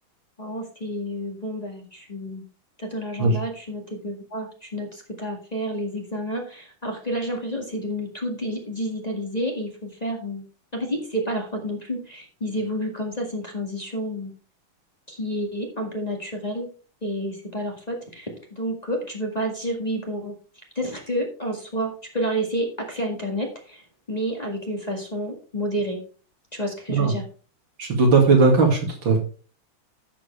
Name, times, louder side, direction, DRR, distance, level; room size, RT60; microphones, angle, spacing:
voice 1, 0.4-2.4 2.8-10.4 10.7-14.3 15.1-16.7 17.0-20.3 20.8-26.0 26.5-27.2, equal, 20° left, 0 dB, 1.9 m, -30 dB
voice 2, 27.8-29.2, right 3 dB, 70° right, 1 dB, 3.0 m, -18 dB
11.0 x 7.6 x 3.4 m, 0.38 s
omnidirectional pair, 2.2 m